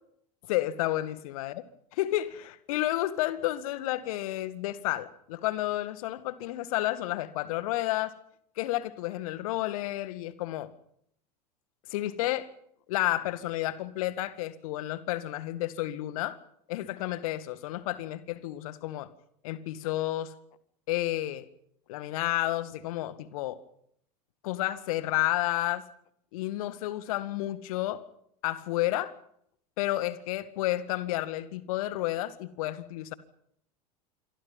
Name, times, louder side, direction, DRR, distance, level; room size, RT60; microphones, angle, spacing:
voice 1, 0.5-1.5 1.9-8.1 8.6-10.7 11.9-12.5 12.9-16.4 16.7-19.1 19.4-20.3 20.9-21.5 21.9-23.6 24.4-25.8 26.3-28.0 28.4-29.1 29.8-33.1, left 15 dB, 60° left, 14 dB, 2.0 m, -31 dB
27.5 x 24.0 x 5.6 m, 0.70 s
figure-of-eight pair, 80°, 21 cm